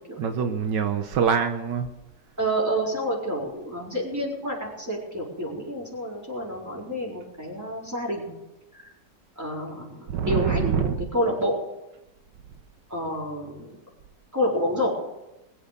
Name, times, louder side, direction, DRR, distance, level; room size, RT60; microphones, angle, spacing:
voice 1, 0.2-1.9 10.1-11.1, right 7 dB, 80° right, 7 dB, 1.6 m, -25 dB
voice 2, 2.4-8.4 8.7-8.8 9.4-11.6 12.9-13.7 14.3-14.9, equal, 10° right, -3 dB, 4.4 m, -28 dB
21.5 x 7.8 x 6.8 m, 0.94 s
omnidirectional pair, 1.9 m